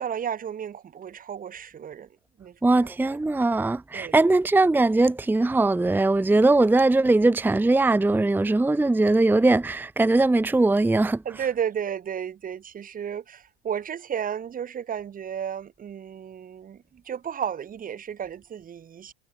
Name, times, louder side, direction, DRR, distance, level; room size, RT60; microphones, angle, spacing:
voice 1, 0.0-2.1 2.4-2.7 3.9-4.3 11.2-19.1, right 8 dB, 25° right, 1.3 m, -33 dB
voice 2, 2.6-11.2, right 2 dB, 5° right, 0.9 m, -20 dB
hypercardioid pair, 80°, 31 cm